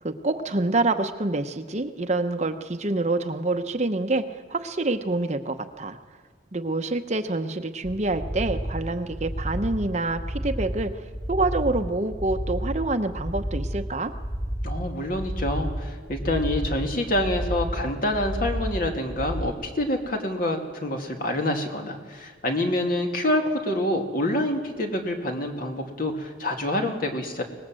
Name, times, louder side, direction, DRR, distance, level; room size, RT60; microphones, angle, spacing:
voice 1, 0.0-4.2 4.5-6.0 6.5-10.9 11.3-14.1, right 2 dB, 40° right, 8 dB, 0.9 m, -26 dB
sound 1, 7.8-19.5, equal, 25° left, 2.1 m, -31 dB
voice 2, 14.6-27.4, left 1 dB, 50° left, 3 dB, 2.6 m, -27 dB
24.0 x 19.5 x 7.7 m, 1.5 s
head